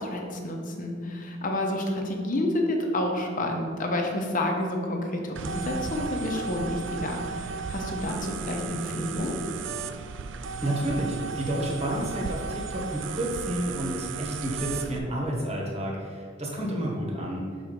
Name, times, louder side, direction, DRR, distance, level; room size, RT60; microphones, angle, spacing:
voice 1, 0.0-9.4, left 1 dB, 45° left, 2 dB, 0.9 m, -29 dB
sound 1, 5.4-15.0, right 5 dB, 75° right, 0.4 m, -35 dB
voice 2, 10.6-17.5, right 1 dB, 35° right, -3 dB, 1.4 m, -30 dB
6.3 x 4.2 x 5.2 m, 2.1 s
head